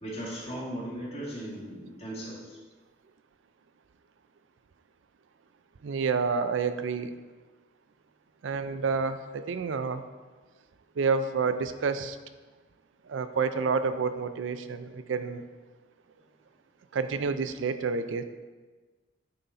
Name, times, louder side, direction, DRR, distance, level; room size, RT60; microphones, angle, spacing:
voice 1, 0.0-2.6, right 1 dB, 30° left, -7 dB, 2.3 m, -37 dB
voice 2, 5.8-7.1 8.4-10.0 11.0-12.2 13.1-15.4 16.9-18.2, right 5 dB, 85° right, 11 dB, 0.4 m, -29 dB
9.5 x 4.0 x 4.0 m, 1.3 s
head